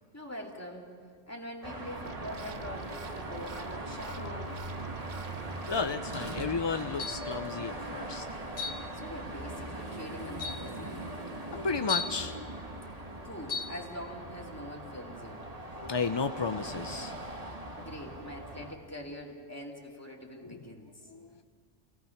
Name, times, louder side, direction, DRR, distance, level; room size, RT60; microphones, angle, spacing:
voice 1, 0.1-0.9 1.3-4.5 8.9-11.1 13.2-15.5 17.5-21.0, equal, 10° left, -1 dB, 2.6 m, -44 dB
Car passing by / Traffic noise roadway noise / Engine, 1.6-18.7, right 1 dB, 30° right, 1.6 m, -40 dB
sound 1, 2.0-6.4, right 6 dB, 45° right, 0.7 m, -46 dB
voice 2, 5.7-8.6 10.1-12.4 13.0-13.3 15.7-17.1 20.4-20.7 21.1-21.4, left 4 dB, 45° left, 8 dB, 0.3 m, -34 dB
sound 2, 7.0-7.4 8.6-8.9 9.8-9.9 10.4-10.7 11.9-12.2 13.5-13.8, left 5 dB, 85° left, 1.6 m, -35 dB
28.5 x 17.0 x 5.8 m, 2.1 s
omnidirectional pair, 1.2 m